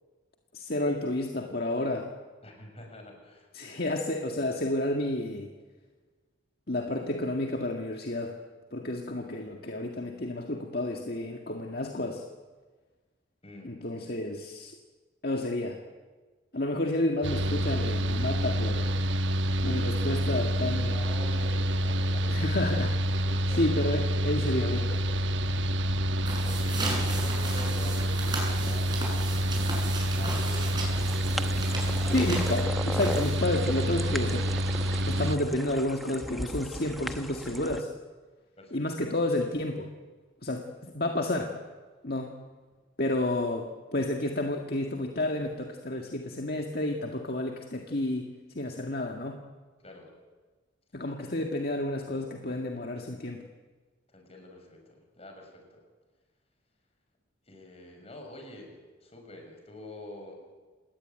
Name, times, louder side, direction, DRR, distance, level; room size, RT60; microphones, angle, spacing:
voice 1, 0.5-2.1 3.5-5.5 6.7-8.4 8.7-12.2 13.6-14.8 15.2-15.8 16.5-18.9 19.6-21.0 22.3-23.1 23.6-25.1 32.1-34.5 35.1-37.9 38.7-39.9 40.4-41.6 42.0-42.4 43.0-48.3 48.5-49.4 50.9-53.5, left 1 dB, 55° left, 3 dB, 1.9 m, -30 dB
voice 2, 2.4-3.5 13.4-13.8 19.2-19.8 20.8-22.5 23.0-23.7 25.5-25.8 26.4-32.8 38.6-39.0 49.8-50.1 54.1-55.8 57.5-60.4, left 1 dB, 30° left, 3 dB, 6.3 m, -47 dB
Mechanical fan, 17.2-35.4, equal, 75° right, 1.1 m, -28 dB
sound 1, 26.2-33.6, right 2 dB, 25° right, 7.4 m, -36 dB
sound 2, 30.9-37.8, equal, ahead, 1.1 m, -38 dB
27.5 x 20.0 x 9.3 m, 1.4 s
head